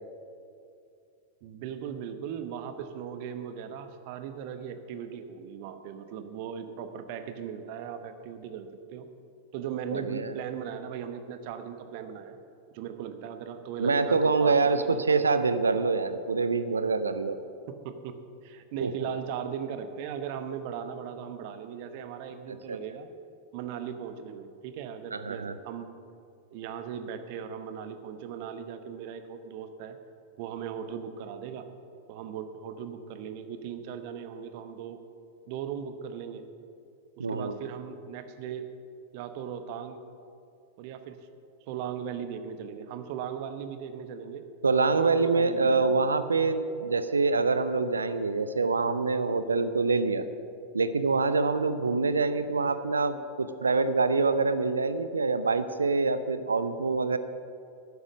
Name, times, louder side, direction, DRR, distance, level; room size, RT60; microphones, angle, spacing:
voice 1, 1.4-9.1 9.5-12.4 12.7-15.2 17.7-23.1 23.5-25.9 26.5-30.0 30.4-31.7 32.1-35.0 35.5-36.4 37.2-38.7 39.1-40.0 40.8-41.2 41.7-44.4 44.9-46.0, right 8 dB, 45° right, 9 dB, 0.9 m, -38 dB
voice 2, 9.9-10.3 13.8-17.4 18.8-19.1 22.7-22.8 25.1-25.5 37.2-37.5 44.6-50.3 50.7-57.2, right 4 dB, 75° right, 12 dB, 0.6 m, -25 dB
12.0 x 9.4 x 6.3 m, 2.5 s
figure-of-eight pair, 90°, 0 cm